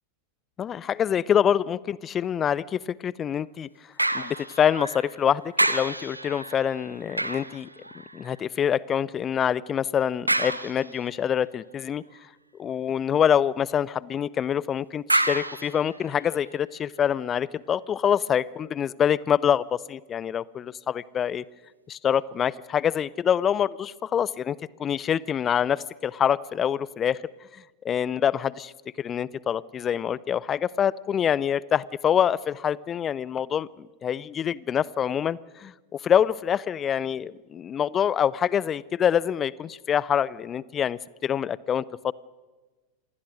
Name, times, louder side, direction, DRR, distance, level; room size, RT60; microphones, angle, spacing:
voice 1, 0.6-3.7 4.1-7.7 8.1-12.0 12.6-21.4 21.9-27.2 27.5-28.7 29.0-42.1, left 9 dB, 25° left, 23 dB, 0.6 m, -26 dB
sound 1, 4.0-5.2 5.5-8.4 10.3-11.2 15.1-16.6 17.1-17.2, right 1 dB, 85° right, 1.2 m, -29 dB
27.0 x 20.0 x 6.4 m, 1.3 s
figure-of-eight pair, 90°, 0 cm